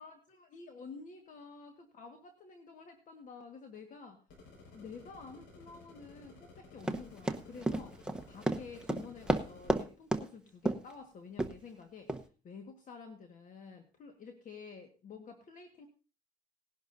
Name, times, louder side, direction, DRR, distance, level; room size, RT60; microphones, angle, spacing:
voice 1, 0.0-4.2 4.7-8.0 8.3-15.9, left 5 dB, 50° left, 4 dB, 1.6 m, -50 dB
sound 1, 4.3-9.7, left 3 dB, 85° left, 5.4 m, -55 dB
Run, 6.8-9.8 10.1-10.3 10.7-10.9 11.4-11.5 12.1-12.2, right 1 dB, 5° right, 1.0 m, -31 dB
19.0 x 11.0 x 2.7 m, 0.36 s
cardioid pair, 110°, 17 cm